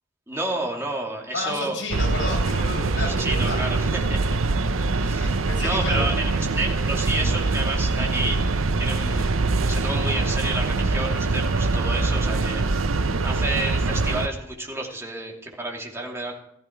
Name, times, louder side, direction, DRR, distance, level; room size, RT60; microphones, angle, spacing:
voice 1, 0.3-1.8 2.9-4.4 4.9-8.5 8.8-9.4 9.7-12.8 13.2-16.3, right 2 dB, 15° right, -1 dB, 2.7 m, -30 dB
voice 2, 1.3-3.6 5.2-6.1, left 2 dB, 65° left, -1 dB, 7.4 m, -31 dB
sound 1, 1.9-14.3, right 3 dB, 90° right, 0.8 m, -23 dB
15.0 x 14.5 x 4.6 m, 0.73 s
head